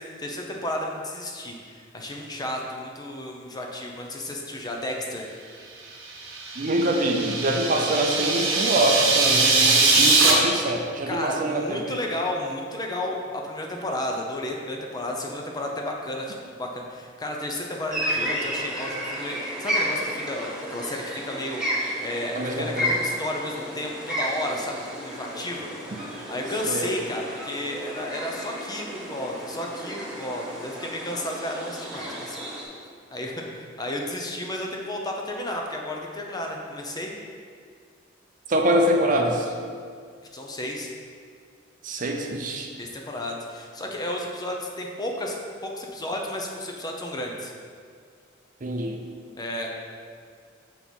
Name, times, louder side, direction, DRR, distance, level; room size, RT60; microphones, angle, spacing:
voice 1, 0.0-5.3 11.1-25.7 26.3-32.4 33.1-37.1 40.3-40.9 42.8-45.4 45.6-47.5 49.4-49.7, left 1 dB, 20° left, 0 dB, 0.7 m, -32 dB
sound 1, 6.1-10.3, right 3 dB, 90° right, 1.1 m, -21 dB
voice 2, 6.6-12.0 22.3-22.9 26.7-26.9 38.5-39.5 41.8-42.7 48.6-49.0, right 1 dB, 40° right, 2 dB, 0.6 m, -24 dB
sound 2, 17.9-32.6, equal, 5° right, 1.1 m, -32 dB
6.1 x 4.5 x 5.3 m, 2.1 s
head